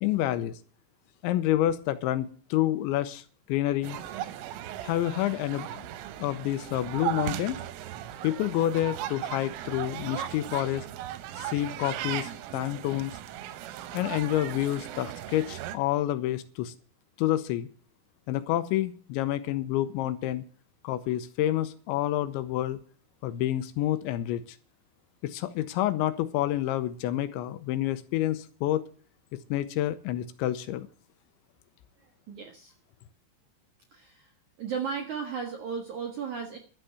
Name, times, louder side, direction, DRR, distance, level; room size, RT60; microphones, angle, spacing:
voice 1, 0.0-0.5 1.2-4.0 4.8-5.9 6.2-7.6 8.2-10.9 11.4-13.1 13.9-16.7 17.2-17.7 18.3-20.4 20.8-22.8 23.2-24.4 25.2-28.9 29.3-30.9, left 13 dB, 80° left, 13 dB, 2.9 m, -28 dB
sound 1, 3.8-15.8, right 12 dB, 90° right, 3.5 m, -37 dB
voice 2, 32.0-32.7 33.9-34.3 34.6-36.6, right 6 dB, 60° right, 3 dB, 2.0 m, -35 dB
12.0 x 8.0 x 7.9 m, 0.42 s
omnidirectional pair, 5.6 m